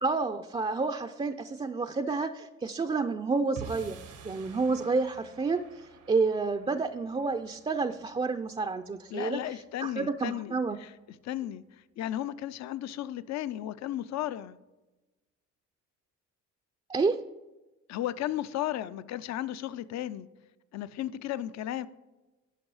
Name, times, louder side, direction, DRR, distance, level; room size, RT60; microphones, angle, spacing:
voice 1, 0.0-4.0 4.2-5.6 6.1-9.4 9.8-10.8 16.9-17.2, right 4 dB, 20° right, 0.4 m, -29 dB
sound 1, 3.6-9.9, right 5 dB, 90° right, 1.4 m, -49 dB
voice 2, 9.1-10.9 11.2-11.6 12.0-14.6 17.9-20.3 20.7-21.9, left 12 dB, 65° left, 0.5 m, -34 dB
10.0 x 5.3 x 4.8 m
cardioid pair, 90°, 30 cm